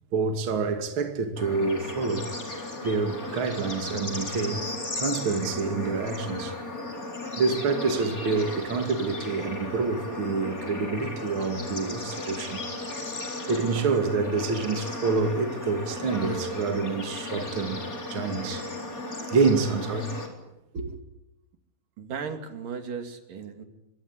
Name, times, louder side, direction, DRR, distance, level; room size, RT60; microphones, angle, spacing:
voice 1, 0.1-2.3 2.8-4.7 5.0-6.6 7.4-12.6 13.5-17.8 18.1-18.7 19.2-20.1 20.7-21.0, right 4 dB, 40° right, 2.9 m, -27 dB
Bird / Insect / Frog, 1.4-20.3, left 2 dB, 25° left, 4.3 m, -35 dB
voice 2, 22.0-23.6, right 6 dB, 75° right, 4.2 m, -36 dB
25.0 x 23.0 x 9.7 m
omnidirectional pair, 3.9 m